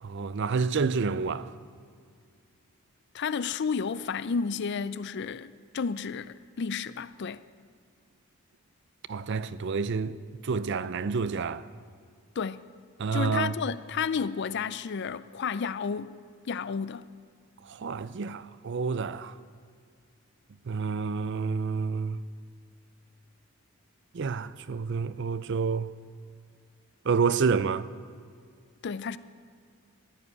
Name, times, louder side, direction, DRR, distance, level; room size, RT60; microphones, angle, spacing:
voice 1, 0.0-1.5 9.1-10.2 10.4-11.7 13.0-13.5 17.6-19.3 20.7-22.2 24.1-25.9 27.1-27.9, right 5 dB, 50° right, 0.4 m, -29 dB
voice 2, 3.1-7.4 12.4-12.7 13.1-16.1 16.5-17.0 28.8-29.2, left 5 dB, 50° left, 0.4 m, -31 dB
14.5 x 7.7 x 9.6 m
head